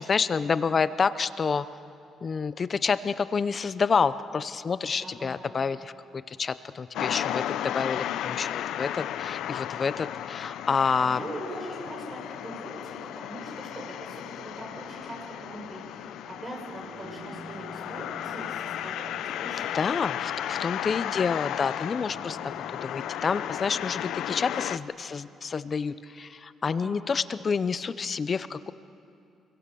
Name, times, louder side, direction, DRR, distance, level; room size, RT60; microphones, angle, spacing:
voice 1, 0.0-1.7 2.2-11.2 19.7-22.5 22.8-28.7, left 5 dB, 40° left, 14 dB, 0.7 m, -28 dB
voice 2, 5.0-5.4 11.2-19.8 26.6-27.0, right 1 dB, 30° right, 0 dB, 7.7 m, -41 dB
sound 1, 6.9-24.8, left 11 dB, 80° left, 0.6 m, -34 dB
sound 2, 14.3-24.2, right 2 dB, 60° right, 3.7 m, -52 dB
28.5 x 23.0 x 7.0 m, 2.6 s
cardioid pair, 90°, 0 cm